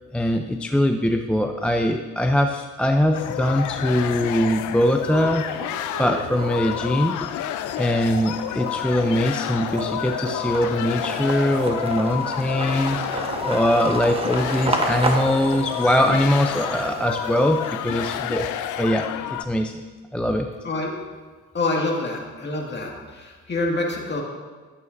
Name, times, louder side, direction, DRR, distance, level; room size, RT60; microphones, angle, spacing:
voice 1, 0.1-5.5 6.0-7.5 7.8-19.7 20.1-20.5, left 1 dB, 5° left, 4 dB, 0.4 m, -22 dB
sound 1, 3.1-19.5, left 11 dB, 80° left, 0.5 m, -30 dB
sound 2, 3.5-4.1 4.5-18.0, right 2 dB, 20° right, 1.1 m, -32 dB
sound 3, 5.5-14.0 14.3-14.6 14.9-15.0, right 1 dB, 70° right, 2.8 m, -44 dB
voice 2, 21.5-24.2, left 2 dB, 35° left, -1 dB, 1.9 m, -26 dB
12.0 x 8.2 x 2.6 m, 1.4 s
cardioid pair, 90°, 30 cm